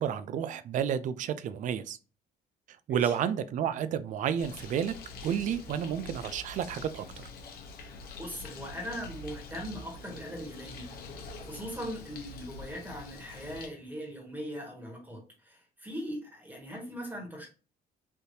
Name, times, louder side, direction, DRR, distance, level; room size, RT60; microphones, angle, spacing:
voice 1, 0.0-2.0 2.9-4.9 5.2-7.2, right 9 dB, 50° right, 0.4 m, -31 dB
Bird, 4.4-13.7, left 3 dB, 60° left, 0.9 m, -45 dB
voice 2, 7.7-10.9 11.4-17.5, equal, 10° right, 1.6 m, -40 dB
3.4 x 2.7 x 2.6 m
cardioid pair, 110°, 17 cm